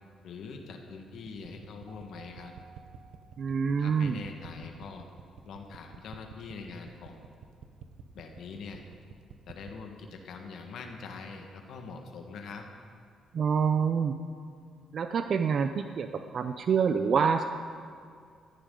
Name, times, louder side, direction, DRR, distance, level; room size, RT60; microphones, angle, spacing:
voice 1, 0.2-2.5 3.8-5.1 5.4-7.2 8.1-8.8 9.5-12.6, left 5 dB, 70° left, 3 dB, 1.4 m, -43 dB
sound 1, 1.3-9.8, right 8 dB, 85° right, 0.9 m, -49 dB
Keyboard (musical), 1.9-4.1, right 4 dB, 30° right, 3.1 m, -56 dB
voice 2, 3.4-4.2 13.3-14.2 14.9-17.4, right 6 dB, 55° right, 8 dB, 0.5 m, -27 dB
15.5 x 14.5 x 3.8 m, 2.2 s
cardioid pair, 90°, 0 cm